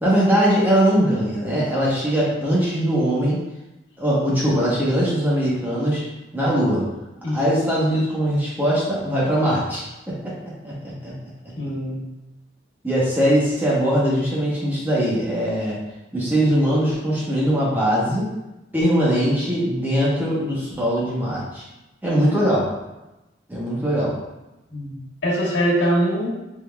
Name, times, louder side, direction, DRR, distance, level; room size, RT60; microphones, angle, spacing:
voice 1, 0.0-3.4 4.0-6.0 6.3-6.9 7.3-10.7 11.0-11.1 12.8-15.8 16.1-18.3 18.7-21.6 22.0-22.7 23.5-24.2, equal, 10° right, -7 dB, 0.9 m, -21 dB
voice 2, 11.6-12.0 24.7-26.3, equal, 90° left, -6 dB, 1.3 m, -23 dB
3.7 x 3.6 x 2.2 m, 0.99 s
head